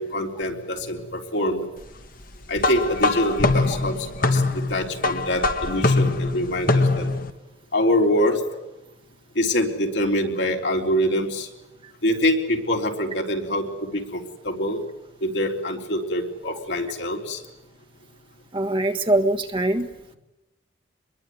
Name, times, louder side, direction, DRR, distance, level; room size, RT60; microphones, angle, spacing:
voice 1, 0.0-1.7 2.5-4.4 4.7-7.1 7.7-8.4 9.4-11.5 12.0-14.8 15.2-17.4, left 1 dB, 65° left, 1 dB, 3.9 m, -24 dB
sound 1, 2.6-7.3, left 3 dB, 45° left, 1.4 m, -23 dB
voice 2, 18.5-19.9, right 1 dB, 25° right, 3 dB, 1.5 m, -22 dB
25.5 x 22.0 x 9.5 m, 0.97 s
head